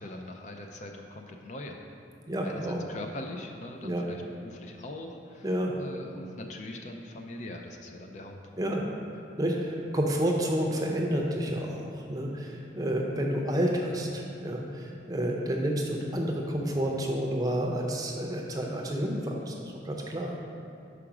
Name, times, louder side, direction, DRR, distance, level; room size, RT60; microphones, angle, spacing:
voice 1, 0.0-1.8 2.4-5.5 5.8-8.4, left 1 dB, 40° left, 3 dB, 0.4 m, -41 dB
voice 2, 2.3-2.8 3.8-4.1 5.4-5.7 8.6-8.8 9.4-20.3, equal, 20° right, 0 dB, 0.6 m, -30 dB
5.0 x 4.8 x 5.9 m, 2.5 s
head